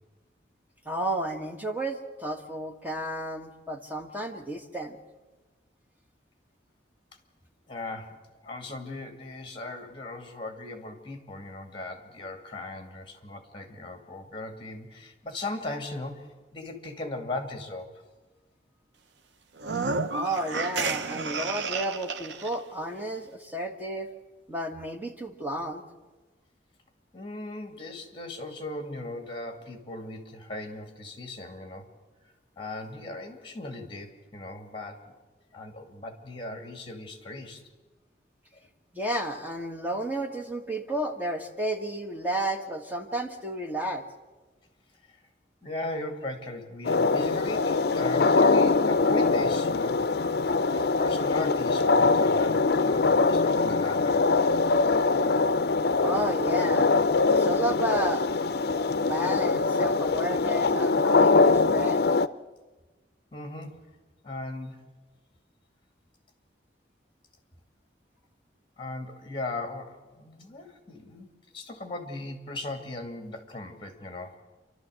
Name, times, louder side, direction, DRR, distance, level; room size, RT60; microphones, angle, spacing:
voice 1, 0.8-5.0 20.1-24.1 24.5-25.8 38.9-44.0 56.0-56.9 57.3-58.3 58.8-62.1, right 1 dB, 10° right, 3 dB, 1.6 m, -32 dB
voice 2, 7.7-8.2 8.4-16.3 16.5-17.9 27.1-31.9 32.6-35.0 35.5-37.6 45.6-50.0 50.7-54.2 63.3-63.8 64.2-64.8 68.8-71.3 71.5-74.4, left 2 dB, 30° left, 6 dB, 2.3 m, -38 dB
sound 1, 19.6-22.5, right 4 dB, 80° right, 0.8 m, -31 dB
sound 2, 46.8-62.3, left 3 dB, 60° left, 0.5 m, -23 dB
29.0 x 12.5 x 7.8 m, 1.2 s
head